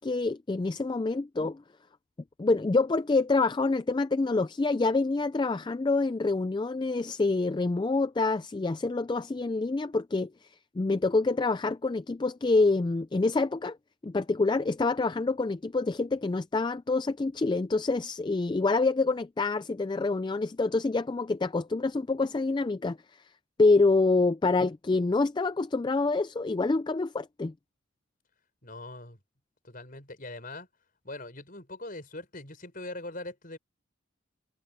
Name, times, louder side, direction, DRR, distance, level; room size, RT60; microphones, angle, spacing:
voice 1, 0.0-1.6 2.4-13.8 14.0-23.3 23.6-27.5, left 3 dB, 20° left, 0.3 m, -27 dB
voice 2, 28.6-29.2 29.6-30.7 31.0-33.6, left 2 dB, 40° left, 5.9 m, -41 dB
head